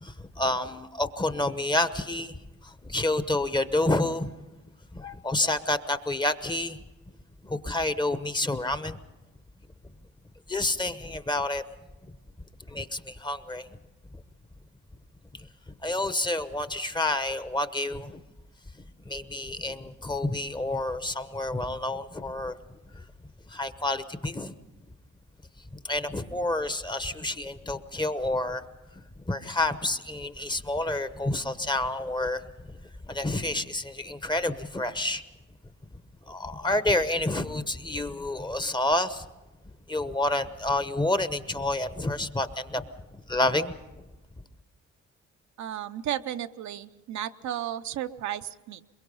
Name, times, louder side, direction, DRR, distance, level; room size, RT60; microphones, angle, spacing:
voice 1, 0.0-4.3 4.9-6.8 7.4-9.0 10.5-11.6 12.1-12.2 12.7-13.7 14.1-14.2 15.3-18.2 18.7-22.6 22.9-23.1 23.5-24.5 25.7-28.6 28.9-32.8 33.0-35.2 36.3-39.2 39.9-43.8, left 2 dB, 15° left, 11 dB, 1.0 m, -29 dB
voice 2, 45.6-48.8, right 11 dB, 70° right, 9 dB, 0.7 m, -34 dB
22.5 x 22.0 x 5.5 m, 1.1 s
cardioid pair, 90°, 30 cm